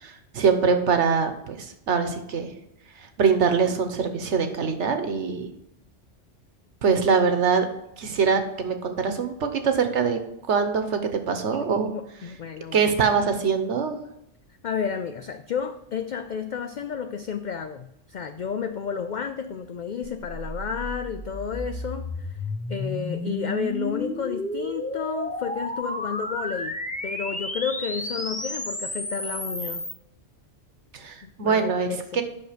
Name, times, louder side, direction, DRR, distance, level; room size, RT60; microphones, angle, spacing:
voice 1, 0.0-2.5 3.0-5.5 6.8-7.7 8.0-10.2 10.5-11.9 12.7-14.0 30.9-31.9 32.1-32.2, right 5 dB, 75° right, 7 dB, 1.3 m, -23 dB
voice 2, 11.5-12.9 14.6-22.3 22.7-29.9 31.2-32.2, left 6 dB, 60° left, 8 dB, 0.5 m, -32 dB
sound 1, 20.0-29.9, left 1 dB, 10° left, 0.5 m, -32 dB
8.7 x 6.0 x 5.0 m, 0.82 s
omnidirectional pair, 1.2 m